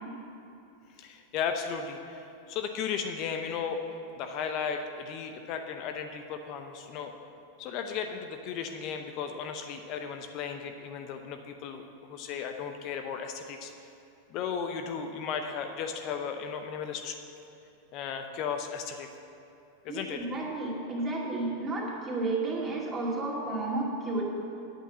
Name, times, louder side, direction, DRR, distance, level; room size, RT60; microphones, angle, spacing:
voice 1, 1.0-3.8 4.1-7.1 7.6-11.8 12.1-13.7 14.3-17.1 17.9-19.1 19.8-20.3, left 6 dB, 50° left, 6 dB, 0.7 m, -35 dB
voice 2, 19.9-24.2, right 2 dB, 25° right, -3 dB, 2.3 m, -32 dB
8.8 x 5.4 x 7.4 m, 2.8 s
hypercardioid pair, 100°, 0 cm